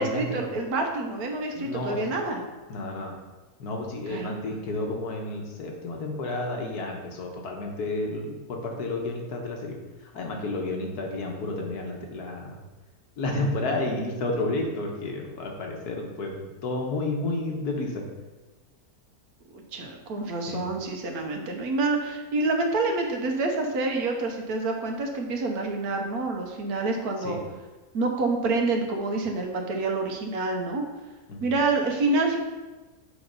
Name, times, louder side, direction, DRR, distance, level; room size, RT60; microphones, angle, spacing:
voice 1, 0.0-2.4 4.1-4.5 19.5-27.4 27.9-30.8 31.4-32.4, right 3 dB, 75° right, 2 dB, 1.4 m, -27 dB
voice 2, 1.6-2.0 2.7-3.1 3.6-9.8 10.1-12.6 13.2-18.1 20.5-20.6 27.2-27.4 31.3-31.5, left 2 dB, 90° left, 1 dB, 1.6 m, -31 dB
6.8 x 4.1 x 5.4 m, 1.2 s
omnidirectional pair, 1.6 m